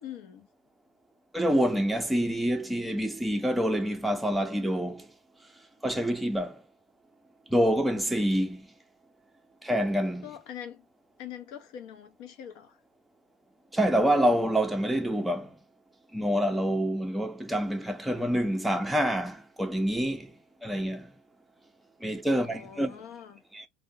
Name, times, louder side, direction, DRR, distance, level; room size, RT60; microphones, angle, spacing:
voice 1, 0.0-0.5 10.2-10.9 11.2-12.8 22.4-23.4, left 10 dB, 70° left, 0.6 m, -43 dB
voice 2, 1.3-5.1 5.8-6.6 7.5-8.7 9.6-10.3 13.7-15.6 16.1-21.1 22.0-23.0 23.5-23.7, equal, 5° right, 0.5 m, -27 dB
2.3 x 2.1 x 2.7 m
supercardioid pair, 120°, 0 cm